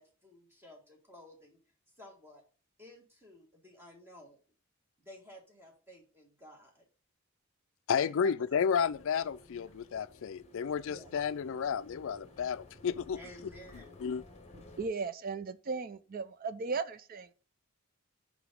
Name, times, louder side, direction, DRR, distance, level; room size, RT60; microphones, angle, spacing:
voice 1, 0.0-1.6 2.0-2.4 2.8-4.4 5.0-6.8 8.1-8.8 9.1-9.3 9.5-9.6 10.8-11.1 13.1-14.0, equal, 10° right, 1.6 m, -53 dB
voice 2, 7.9-13.2 14.0-14.2, left 7 dB, 60° left, 0.3 m, -32 dB
sound 1, 8.3-14.9, left 2 dB, 30° left, 1.0 m, -55 dB
voice 3, 14.8-17.3, right 4 dB, 40° right, 0.5 m, -36 dB
5.0 x 4.9 x 5.0 m
head